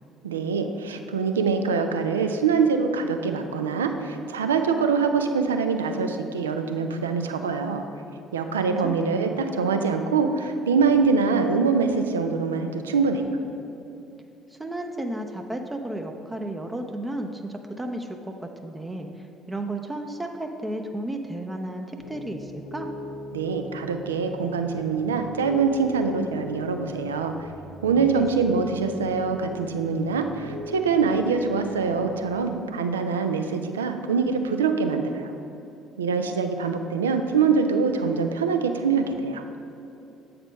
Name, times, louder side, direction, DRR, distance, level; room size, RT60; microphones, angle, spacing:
voice 1, 0.2-7.8 8.3-13.3 23.3-27.5 27.8-35.3 36.0-39.4, right 5 dB, 80° right, 6 dB, 0.4 m, -24 dB
voice 2, 8.7-9.4 14.5-22.9 28.0-28.1, right 1 dB, 15° right, 4 dB, 0.5 m, -33 dB
Piano, 22.0-32.4, left 2 dB, 75° left, 1.0 m, -40 dB
8.0 x 4.3 x 5.1 m, 2.9 s
figure-of-eight pair, 50°, 0 cm